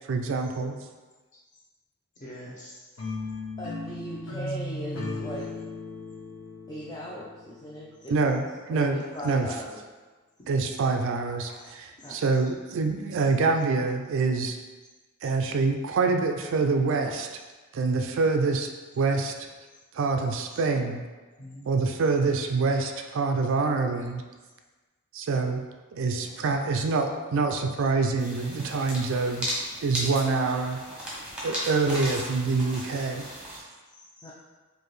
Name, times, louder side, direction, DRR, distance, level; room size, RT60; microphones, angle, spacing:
voice 1, 0.1-0.8 8.1-9.5 10.5-14.6 15.2-17.3 17.7-18.7 18.9-19.3 19.9-21.0 21.7-24.2 25.1-25.6 25.9-29.5 29.8-30.8 31.4-33.2 33.5-33.6, right 4 dB, 60° right, 5 dB, 0.3 m, -26 dB
voice 2, 2.2-3.1 10.4-10.5 11.5-11.7 12.0-12.1 20.5-20.6 21.4-21.7 25.9-26.5 33.9-34.3, left 1 dB, 35° left, -5 dB, 0.9 m, -46 dB
sound 1, 3.0-8.1, left 2 dB, 70° left, 0.9 m, -36 dB
voice 3, 3.6-5.5 6.7-8.4 8.7-9.8 12.0-12.2 34.2-34.3, equal, 20° left, -5 dB, 0.4 m, -39 dB
sound 2, 28.2-33.6, equal, 5° right, 0.9 m, -35 dB
4.6 x 2.6 x 3.1 m, 1.3 s
head